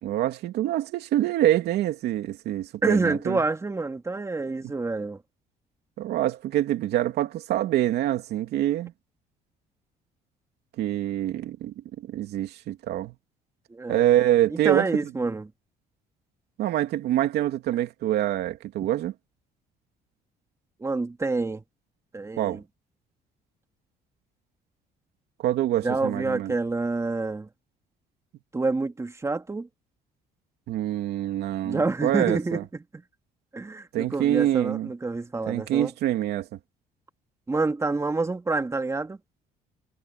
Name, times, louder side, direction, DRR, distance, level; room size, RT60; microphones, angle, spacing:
voice 1, 0.0-3.4 4.6-4.7 6.0-8.9 10.8-13.1 13.9-14.9 16.6-19.1 22.4-22.6 25.4-26.5 30.7-32.6 33.9-34.9 35.5-36.5, right 13 dB, 75° right, 2.9 m, -25 dB
voice 2, 2.8-5.2 13.7-14.0 14.5-15.5 20.8-21.6 22.1-22.6 25.8-27.5 28.5-29.7 31.6-33.0 33.5-35.9 37.5-39.2, right 3 dB, 15° right, 2.7 m, -27 dB
cardioid pair, 110°, 17 cm